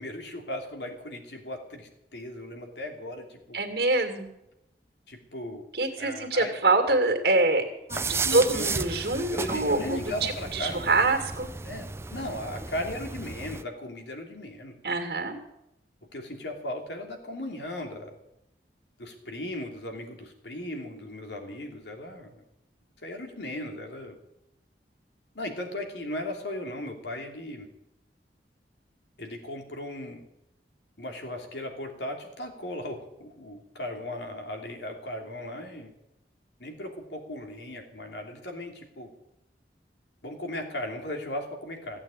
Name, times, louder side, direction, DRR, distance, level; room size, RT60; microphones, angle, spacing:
voice 1, 0.0-3.6 5.1-5.6 6.0-6.5 7.9-8.9 9.3-10.8 11.6-14.8 16.1-18.1 19.0-22.4 23.0-24.2 25.3-27.7 29.2-30.2 31.0-35.9 36.6-39.1 40.2-42.0, left 1 dB, 80° left, 3 dB, 3.0 m, -37 dB
voice 2, 3.5-4.3 5.7-7.7 8.3-11.5 14.8-15.4, right 2 dB, 60° right, 4 dB, 2.4 m, -25 dB
sound 1, 7.9-13.6, right 4 dB, 15° right, 0.4 m, -34 dB
15.5 x 8.7 x 9.0 m, 0.85 s
head